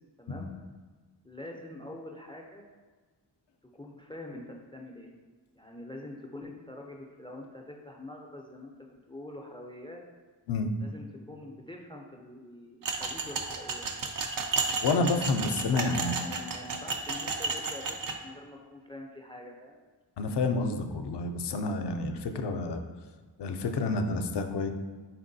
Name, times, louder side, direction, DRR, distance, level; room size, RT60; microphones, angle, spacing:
voice 1, 0.2-0.5 1.2-2.7 3.8-5.1 5.6-10.0 10.8-13.9 15.9-19.8, left 1 dB, 10° left, 1 dB, 0.4 m, -45 dB
sound 1, 12.8-18.1, right 4 dB, 50° right, 0.5 m, -33 dB
voice 2, 14.8-16.2 20.2-22.8 23.4-24.7, left 3 dB, 70° left, 6 dB, 0.5 m, -29 dB
4.4 x 3.5 x 2.6 m, 1.4 s
wide cardioid pair, 60°, 43 cm